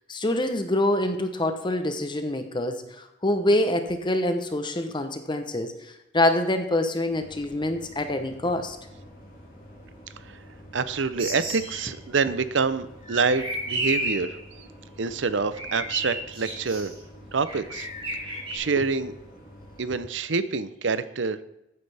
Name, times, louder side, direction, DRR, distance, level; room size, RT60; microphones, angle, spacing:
voice 1, 0.1-8.8, left 1 dB, 25° left, 7 dB, 0.9 m, -26 dB
sound 1, 7.1-20.0, equal, 50° left, 4.6 m, -48 dB
voice 2, 10.7-14.7 15.0-16.9 17.3-17.9 18.3-19.1 19.8-21.4, right 4 dB, 70° right, 14 dB, 0.7 m, -27 dB
sound 2, 11.1-11.9 13.0-14.4 15.5-16.9 17.4-18.6, right 1 dB, 30° right, 4.2 m, -32 dB
14.5 x 9.6 x 3.5 m, 0.90 s
head